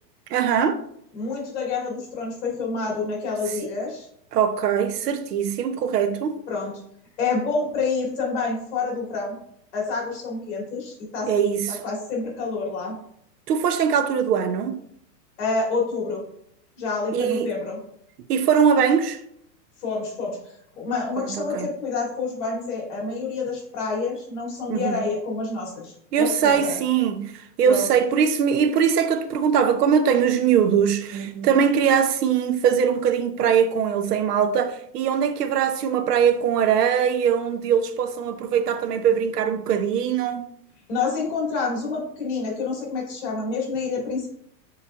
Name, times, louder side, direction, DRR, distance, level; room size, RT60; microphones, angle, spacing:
voice 1, 0.3-0.8 4.3-6.4 11.3-11.8 13.5-14.8 17.1-17.5 18.3-19.2 21.2-21.7 24.7-25.1 26.1-40.5, right 7 dB, 70° right, 0.6 m, -21 dB
voice 2, 1.1-4.1 6.5-6.7 7.2-9.4 9.7-11.3 11.8-12.9 15.4-16.2 16.8-17.8 19.8-20.4 20.8-26.8 27.6-27.9 40.9-44.3, left 4 dB, 45° left, 1.8 m, -28 dB
6.7 x 3.2 x 2.3 m
supercardioid pair, 175°, 49 cm